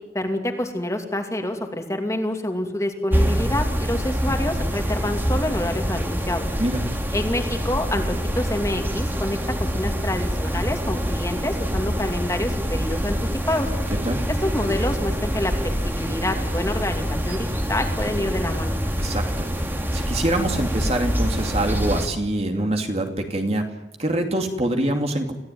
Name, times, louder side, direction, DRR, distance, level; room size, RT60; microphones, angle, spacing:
voice 1, 0.1-6.5 7.1-13.2 13.5-13.7 14.4-15.5 15.8-18.8, left 1 dB, 15° left, 4 dB, 2.7 m, -27 dB
sound 1, 3.1-22.1, equal, 10° right, 2.3 m, -25 dB
voice 2, 19.0-23.6 24.0-25.3, right 1 dB, 35° right, 4 dB, 2.6 m, -25 dB
27.0 x 16.5 x 9.4 m, 1.0 s
head